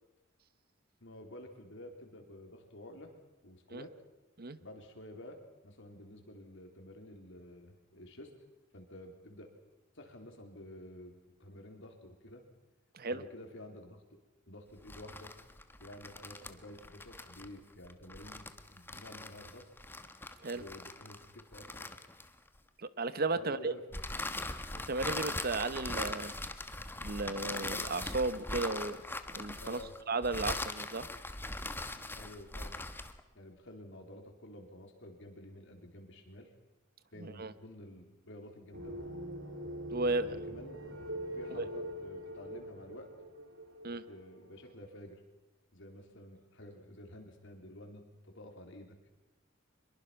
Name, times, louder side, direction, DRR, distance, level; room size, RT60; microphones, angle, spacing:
voice 1, 1.0-3.1 3.4-3.9 4.6-8.3 8.7-9.5 9.9-12.4 13.1-14.0 14.5-15.3 15.8-19.7 20.5-21.9 23.3-23.8 29.6-29.9 30.2-30.3 31.6-32.8 33.4-36.5 37.1-39.0 40.2-41.0 41.4-43.1 43.9-45.2 45.7-49.0, left 1 dB, 65° left, 4 dB, 3.8 m, -51 dB
sound 1, 14.8-22.6 23.9-33.2, left 2 dB, 10° left, 1.2 m, -41 dB
voice 2, 22.8-23.7 24.9-26.3 27.0-29.0 29.3-29.8 30.1-31.1 37.2-37.5 39.9-40.3 41.5-41.6 43.8-44.0, right 3 dB, 50° right, 14 dB, 1.0 m, -34 dB
sound 2, 38.7-44.6, equal, 75° right, 3.3 m, -43 dB
24.5 x 22.0 x 5.8 m, 1.1 s
head